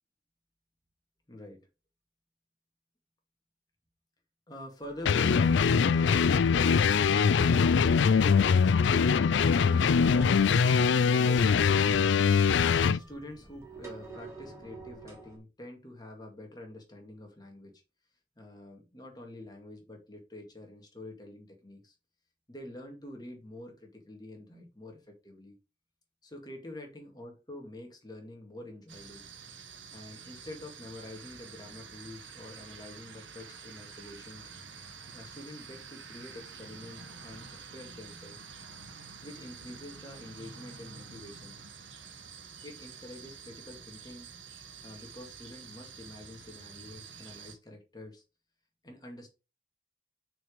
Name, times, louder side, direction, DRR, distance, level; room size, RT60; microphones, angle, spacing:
voice 1, 1.3-1.7 4.5-5.6 9.7-11.9 12.4-17.8 18.4-22.0 22.5-25.6 26.2-29.2 29.9-34.5 35.1-38.5 39.2-41.6 42.6-44.4 44.8-48.2 48.8-49.3, left 1 dB, 20° left, 2.1 m, -47 dB
sound 1, 5.1-13.0, left 6 dB, 70° left, 0.4 m, -23 dB
sound 2, 10.1-15.4, right 3 dB, 15° right, 2.2 m, -52 dB
sound 3, 28.9-47.6, right 5 dB, 85° right, 1.2 m, -48 dB
6.1 x 5.0 x 5.1 m
head